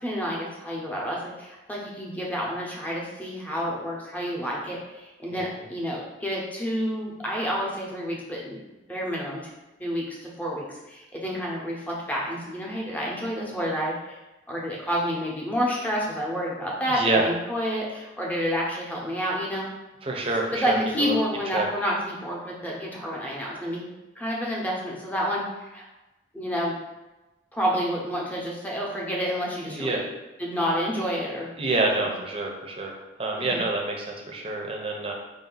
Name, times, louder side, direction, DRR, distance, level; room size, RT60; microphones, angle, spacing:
voice 1, 0.0-8.6 8.9-9.4 9.8-14.2 14.5-19.7 20.5-23.9 24.2-25.8 26.3-26.8 27.5-30.0 30.4-31.5 32.0-32.1 33.4-33.6, equal, 10° left, -4 dB, 0.9 m, -29 dB
voice 2, 16.9-17.3 20.0-20.7 21.0-21.1 21.5-21.7 29.7-30.0 31.6-35.1, right 2 dB, 30° right, 0 dB, 0.7 m, -27 dB
5.0 x 2.7 x 3.9 m, 1.1 s
head